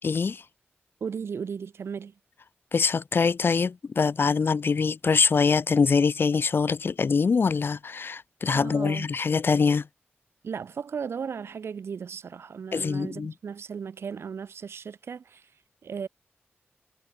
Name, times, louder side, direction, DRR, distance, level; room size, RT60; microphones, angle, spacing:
voice 1, 0.0-0.4 2.7-9.8 12.7-13.3, left 5 dB, 60° left, 1.2 m, -24 dB
voice 2, 1.0-2.1 8.5-9.1 10.4-15.5 15.8-16.1, right 6 dB, 90° right, 3.5 m, -36 dB
wide cardioid pair, 90°, 4 cm